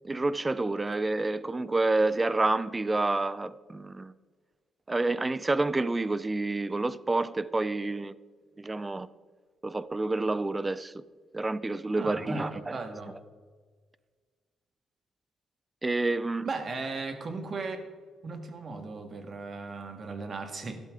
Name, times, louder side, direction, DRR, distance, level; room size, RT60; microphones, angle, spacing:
voice 1, 0.0-4.1 4.9-8.1 8.6-9.1 9.6-10.9 11.3-12.8 15.8-16.5, right 2 dB, 20° right, 0.5 m, -28 dB
voice 2, 12.0-13.1 16.5-17.8 18.2-20.8, right 3 dB, 45° right, 1.8 m, -36 dB
12.0 x 12.0 x 3.8 m
cardioid pair, 90°, 0 cm